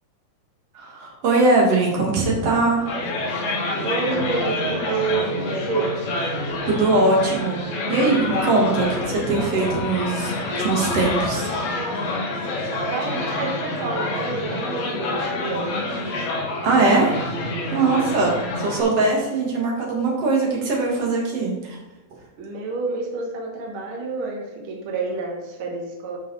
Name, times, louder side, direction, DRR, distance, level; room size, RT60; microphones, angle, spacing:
voice 1, 0.7-2.9 6.7-7.6 7.9-11.5 16.6-17.3 17.7-21.8, right 3 dB, 50° right, -2 dB, 2.4 m, -21 dB
sound 1, 2.9-18.8, left 2 dB, 80° left, 3.4 m, -27 dB
voice 2, 3.8-5.9 12.7-15.9 22.4-26.2, right 4 dB, 80° right, 0 dB, 1.1 m, -28 dB
9.7 x 5.5 x 4.0 m, 1.1 s
omnidirectional pair, 4.3 m